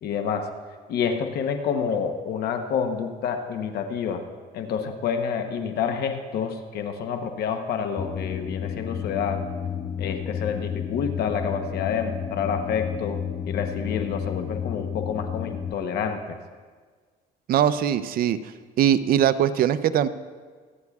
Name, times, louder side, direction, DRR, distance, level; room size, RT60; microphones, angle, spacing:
voice 1, 0.0-0.5 0.9-4.3 4.5-9.4 10.0-16.4, left 7 dB, 70° left, 6 dB, 0.9 m, -28 dB
sound 1, 8.0-15.7, left 8 dB, 25° left, 0.5 m, -31 dB
voice 2, 17.5-18.4 18.8-20.1, right 10 dB, 60° right, 13 dB, 0.5 m, -21 dB
25.0 x 9.6 x 2.4 m, 1.5 s
cardioid pair, 110°, 17 cm